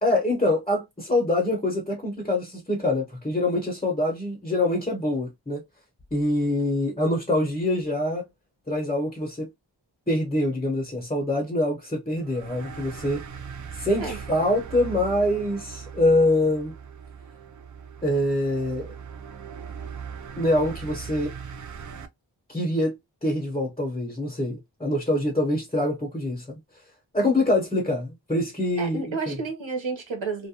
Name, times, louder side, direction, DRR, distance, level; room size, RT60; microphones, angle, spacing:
voice 1, 0.0-5.6 6.1-8.2 8.7-9.5 10.1-13.2 13.8-16.7 18.0-18.9 20.4-21.3 22.5-22.9 23.2-26.6 27.1-29.3, left 1 dB, 15° left, 0.9 m, -25 dB
sound 1, 12.2-22.1, right 6 dB, 45° right, 0.4 m, -39 dB
voice 2, 28.8-30.5, right 4 dB, 90° right, 1.0 m, -31 dB
2.4 x 2.1 x 2.8 m
wide cardioid pair, 55°, 45 cm